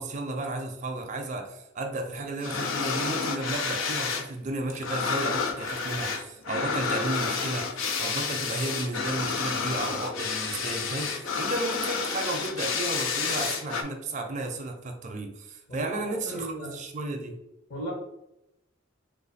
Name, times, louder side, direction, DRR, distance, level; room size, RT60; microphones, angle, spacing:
voice 1, 0.0-17.4, right 2 dB, 40° right, 4 dB, 0.4 m, -33 dB
sound 1, 2.4-4.3 4.5-13.8, left 5 dB, 85° left, 0.4 m, -30 dB
voice 2, 15.7-16.7 17.7-17.9, right 1 dB, 50° left, -2 dB, 1.2 m, -36 dB
3.1 x 2.2 x 4.0 m, 0.86 s
head